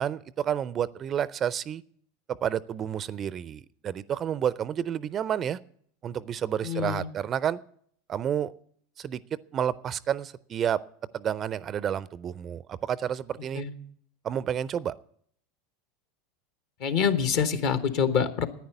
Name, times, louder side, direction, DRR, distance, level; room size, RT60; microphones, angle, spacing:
voice 1, 0.0-1.8 2.4-5.6 6.0-7.6 8.1-8.5 9.0-9.2 9.5-10.8 11.1-13.6 14.2-14.9, right 9 dB, 35° right, 0.4 m, -30 dB
voice 2, 6.6-7.1 13.6-13.7 16.8-18.5, left 7 dB, 55° left, 1.1 m, -26 dB
10.5 x 9.5 x 8.1 m
figure-of-eight pair, 80°, 0 cm